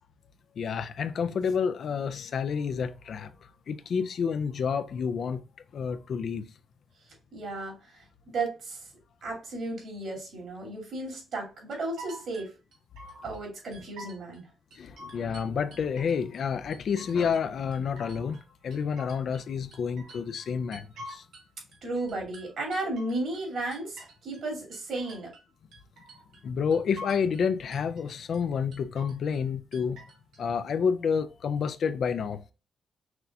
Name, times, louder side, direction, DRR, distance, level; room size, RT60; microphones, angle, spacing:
voice 1, 0.6-3.3 3.7-5.4 5.7-6.5 14.8-21.2 26.4-30.0 30.4-32.4, left 6 dB, 60° left, 0.3 m, -29 dB
voice 2, 7.3-8.0 8.3-8.9 9.2-12.5 13.2-14.5 21.8-25.3, right 2 dB, 65° right, 2.3 m, -34 dB
sound 1, 11.7-13.4 13.7-14.4 14.7-16.4 16.7-17.5 17.7-19.5 19.7-21.5 21.7-24.4 24.7-25.5 25.7-26.4 26.7-27.4 27.7-28.4 28.7-29.4 29.7-30.4, equal, 90° right, 1.4 m, -47 dB
5.9 x 2.7 x 2.3 m
cardioid pair, 125°, 0 cm